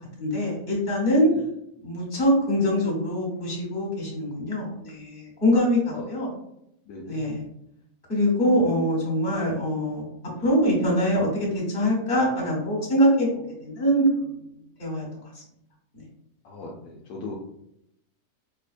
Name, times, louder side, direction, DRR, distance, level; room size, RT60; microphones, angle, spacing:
voice 1, 0.2-1.3 1.8-6.3 7.0-7.4 8.1-10.1 10.4-13.3 13.6-14.2 14.8-15.0, equal, 35° left, -3 dB, 1.4 m, -23 dB
voice 2, 6.9-7.3 16.4-17.3, left 3 dB, 75° left, -2 dB, 1.1 m, -38 dB
5.3 x 2.1 x 2.4 m, 0.78 s
omnidirectional pair, 1.8 m